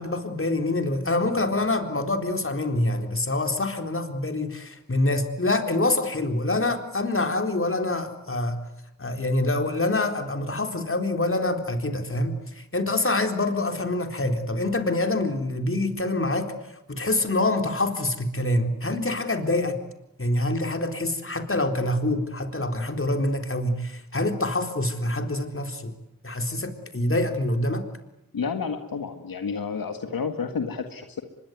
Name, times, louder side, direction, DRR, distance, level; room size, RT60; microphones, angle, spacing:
voice 1, 0.0-8.6 9.0-16.5 16.9-19.8 20.2-25.9 26.2-27.8, left 2 dB, 40° left, 6 dB, 4.0 m, -26 dB
voice 2, 28.3-31.2, left 5 dB, 80° left, 6 dB, 1.9 m, -30 dB
24.5 x 22.0 x 9.5 m, 0.85 s
cardioid pair, 40°, 34 cm